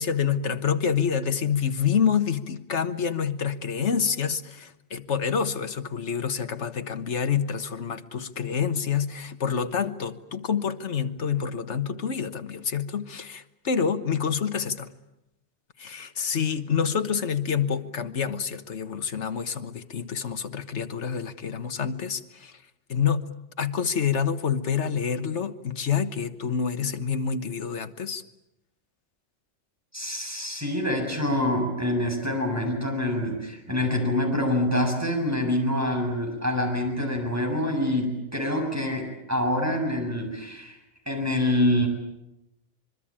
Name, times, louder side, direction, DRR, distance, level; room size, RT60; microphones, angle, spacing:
voice 1, 0.0-14.9 15.8-22.5 22.9-23.3 23.6-28.2, left 7 dB, 65° left, 1.5 m, -27 dB
voice 2, 29.9-40.8 41.1-41.9, left 1 dB, 10° right, 7.1 m, -26 dB
25.5 x 23.0 x 8.8 m
omnidirectional pair, 1.3 m